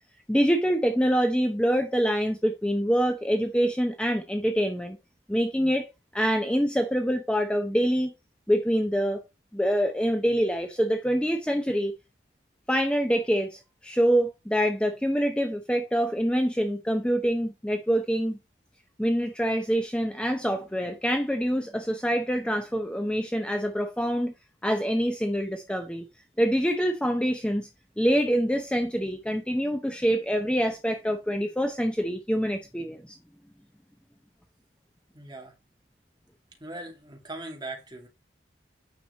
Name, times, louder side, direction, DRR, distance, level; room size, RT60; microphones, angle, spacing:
voice 1, 0.3-5.0 5.3-5.9 6.1-8.1 8.5-9.2 9.5-11.9 12.7-18.4 19.0-24.3 24.6-26.0 26.4-27.7 28.0-33.2, equal, 5° left, 0.7 m, -25 dB
voice 2, 35.1-35.5 36.6-38.1, right 2 dB, 20° right, 2.5 m, -40 dB
9.4 x 6.0 x 4.0 m
head